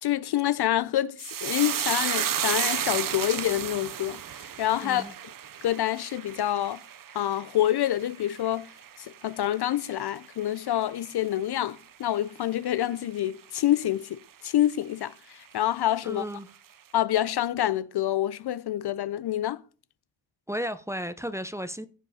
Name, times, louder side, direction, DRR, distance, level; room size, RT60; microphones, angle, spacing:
voice 1, 0.0-5.1 5.6-6.8 7.1-8.7 9.0-16.2 16.9-19.6, left 12 dB, 60° left, 0.5 m, -27 dB
sound 1, 1.2-9.8 10.1-10.8 11.1-11.3, right 9 dB, 45° right, 0.6 m, -32 dB
voice 2, 4.8-5.1 16.0-16.5 20.5-21.9, equal, 5° right, 0.6 m, -34 dB
15.0 x 5.3 x 4.1 m
cardioid pair, 90°, 45 cm